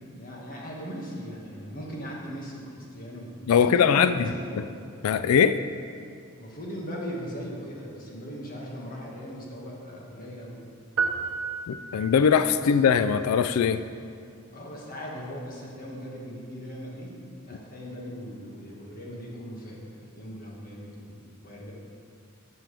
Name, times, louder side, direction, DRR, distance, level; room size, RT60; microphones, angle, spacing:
voice 1, 0.0-4.7 6.4-10.6 12.5-12.7 14.5-17.1 17.4-19.8 20.1-21.7, equal, 40° left, -3 dB, 1.9 m, -39 dB
voice 2, 3.5-4.1 5.0-5.6 11.7-13.8, left 7 dB, 80° left, 12 dB, 0.3 m, -21 dB
sound 1, 11.0-12.4, right 5 dB, 75° right, 0.8 m, -31 dB
13.5 x 7.5 x 3.4 m, 2.4 s
head